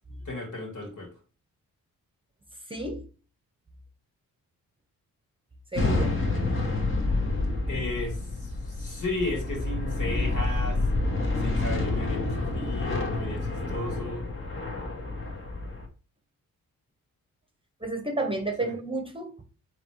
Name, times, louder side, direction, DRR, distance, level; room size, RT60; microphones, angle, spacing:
voice 1, 0.3-1.1 7.7-10.8 11.4-14.3 18.6-18.8, left 2 dB, 55° left, 2.1 m, -34 dB
voice 2, 2.7-3.1 5.7-6.2 17.8-19.3, right 2 dB, 15° right, 1.0 m, -31 dB
sound 1, 5.7-15.9, left 2 dB, 35° left, 1.4 m, -28 dB
3.7 x 3.1 x 4.6 m
cardioid pair, 65°, 36 cm